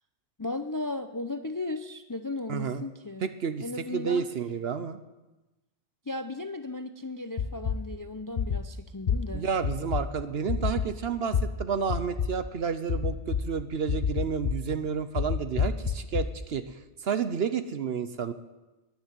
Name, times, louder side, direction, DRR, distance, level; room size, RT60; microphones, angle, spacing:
voice 1, 0.4-3.3 3.6-4.2 6.1-9.4, left 2 dB, 25° left, 10 dB, 0.4 m, -35 dB
voice 2, 2.5-2.8 3.2-3.6 3.9-5.0 9.3-16.6 17.0-18.3, right 6 dB, 60° right, 11 dB, 0.9 m, -30 dB
sound 1, 7.4-7.8 8.4-8.6 9.1-9.2 9.6-10.0 10.5-10.9 11.3-11.4 11.9-12.3 12.9-13.4 13.9-14.5 15.2-16.2, left 7 dB, 50° left, 0.9 m, -26 dB
12.5 x 10.5 x 9.1 m, 1.1 s
omnidirectional pair, 1.2 m